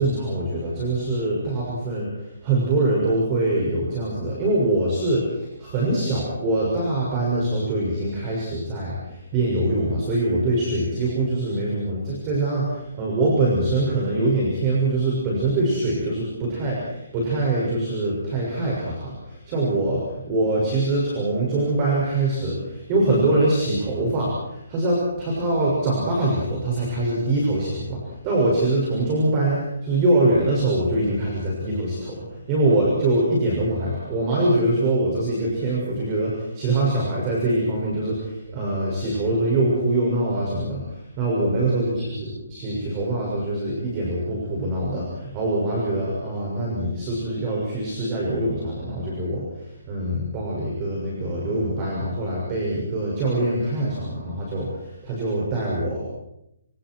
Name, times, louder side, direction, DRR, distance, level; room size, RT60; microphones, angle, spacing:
voice 1, 0.0-56.0, right 2 dB, 20° right, -3 dB, 6.6 m, -24 dB
28.0 x 27.0 x 4.8 m, 0.83 s
hypercardioid pair, 170°, 0 cm